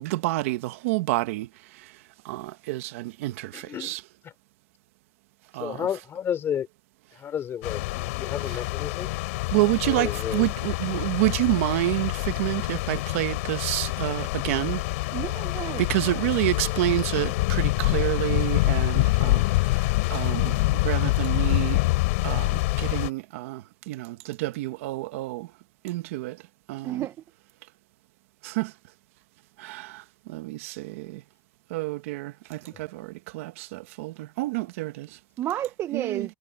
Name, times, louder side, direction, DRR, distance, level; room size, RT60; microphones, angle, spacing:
voice 1, 0.0-4.0 5.5-5.9 8.5-8.6 9.5-15.1 15.8-25.5 25.8-27.1 28.4-28.7 29.6-31.2 31.7-35.2 35.9-36.3, right 19 dB, 90° right, 1.2 m, -29 dB
voice 2, 3.5-3.9 4.2-4.3 5.6-6.7 7.1-9.1 9.9-10.4, left 9 dB, 35° left, 3.4 m, -32 dB
sound 1, 7.6-23.1, left 22 dB, 90° left, 3.3 m, -26 dB
voice 3, 15.1-15.8 26.8-27.1 35.4-36.3, right 12 dB, 40° right, 0.7 m, -31 dB
supercardioid pair, 135°, 7 cm